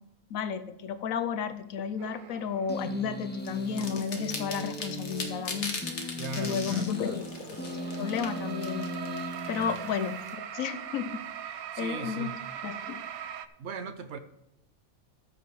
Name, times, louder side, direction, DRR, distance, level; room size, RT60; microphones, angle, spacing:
voice 1, 0.3-5.8 6.4-7.6 8.0-8.9 9.5-11.2 11.4-12.3 12.6-13.0, left 7 dB, 70° left, 11 dB, 1.1 m, -33 dB
sound 1, 2.0-3.1 4.0-4.1 5.6-13.5, right 9 dB, 85° right, 1.1 m, -41 dB
sound 2, 2.7-10.1, left 1 dB, 10° left, 0.8 m, -38 dB
sound 3, 3.4-10.3, left 3 dB, 55° left, 1.6 m, -40 dB
voice 2, 6.2-7.2 9.6-9.9 11.7-12.4 13.6-14.2, right 4 dB, 60° right, 11 dB, 0.9 m, -39 dB
14.0 x 6.0 x 4.7 m, 0.85 s
omnidirectional pair, 1.5 m